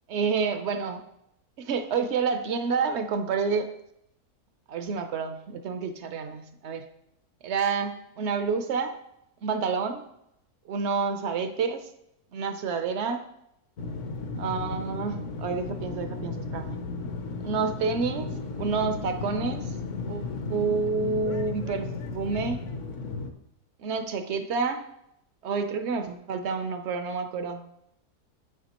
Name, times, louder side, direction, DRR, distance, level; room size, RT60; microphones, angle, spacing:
voice 1, 0.1-1.0 1.6-3.7 4.7-6.8 7.4-8.9 9.4-10.0 10.7-11.9 12.3-13.2 14.4-16.8 17.4-18.3 18.6-19.7 20.1-22.6 23.8-24.9 25.4-27.6, right 5 dB, 60° right, 8 dB, 0.7 m, -29 dB
sound 1, 13.8-23.3, left 3 dB, 60° left, 1.0 m, -34 dB
8.7 x 7.2 x 2.9 m, 0.79 s
omnidirectional pair, 1.7 m